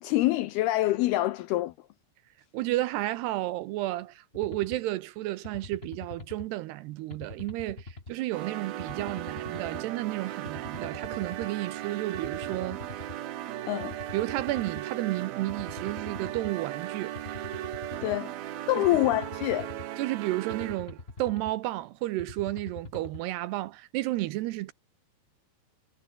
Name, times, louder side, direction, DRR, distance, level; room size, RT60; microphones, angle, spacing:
voice 1, 0.0-1.7 13.7-14.0 18.0-18.3 18.7-19.7, left 16 dB, 85° left, 2.3 m, -26 dB
voice 2, 2.5-12.8 14.1-17.1 18.8-18.9 20.0-24.7, right 17 dB, 80° right, 2.6 m, -32 dB
sound 1, 4.3-4.8 5.4-6.5 7.1-8.1 8.8-9.8 10.4-11.5 12.1-13.2 13.8-14.8 15.5-16.5 17.1-18.2 18.8-19.9 20.5-21.5 22.2-23.2, left 3 dB, 20° left, 1.8 m, -44 dB
sound 2, 8.3-21.0, right 13 dB, 65° right, 2.9 m, -37 dB
omnidirectional pair, 5.3 m